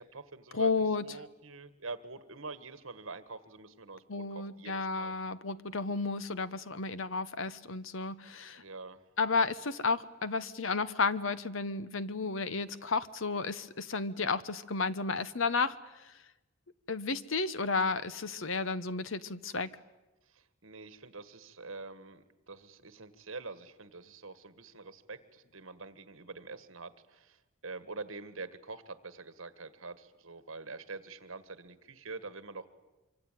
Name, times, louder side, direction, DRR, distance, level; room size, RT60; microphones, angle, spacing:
voice 1, 0.0-5.1 8.5-9.0 20.3-27.4 27.6-32.6, right 3 dB, 75° right, 12 dB, 1.7 m, -45 dB
voice 2, 0.5-1.1 4.1-8.6 9.2-15.8 16.0-16.1 16.9-19.7, left 4 dB, 70° left, 14 dB, 1.1 m, -32 dB
25.5 x 25.0 x 9.2 m, 1.0 s
head